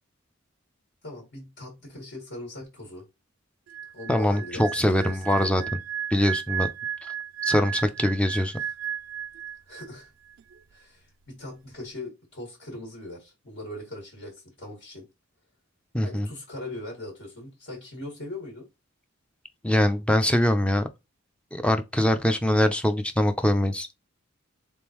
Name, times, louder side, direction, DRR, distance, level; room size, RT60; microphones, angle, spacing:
voice 1, 1.0-3.0 3.9-5.7 9.7-10.1 10.7-15.1 16.0-18.7, left 1 dB, 60° left, 1.8 m, -40 dB
sound 1, 3.7-10.0 10.3-10.6, right 9 dB, 70° right, 0.3 m, -34 dB
voice 2, 4.1-5.8 6.1-6.7 7.4-8.6 15.9-16.3 19.6-20.9 21.5-24.0, left 1 dB, 5° left, 0.5 m, -23 dB
3.8 x 3.6 x 3.0 m
head